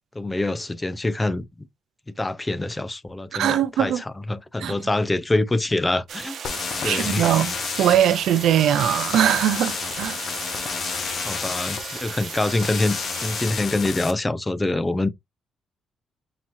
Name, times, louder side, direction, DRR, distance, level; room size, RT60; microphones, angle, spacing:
voice 1, 0.2-1.4 2.2-6.4 6.8-7.3 11.2-15.1, left 2 dB, 15° left, 0.5 m, -25 dB
voice 2, 3.3-4.0 4.6-4.7 6.8-10.2, right 10 dB, 75° right, 0.5 m, -21 dB
sound 1, 6.1-13.5, right 7 dB, 60° right, 1.0 m, -37 dB
sound 2, 6.4-14.1, left 6 dB, 55° left, 0.8 m, -31 dB
5.9 x 2.8 x 2.5 m
cardioid pair, 90°, 0 cm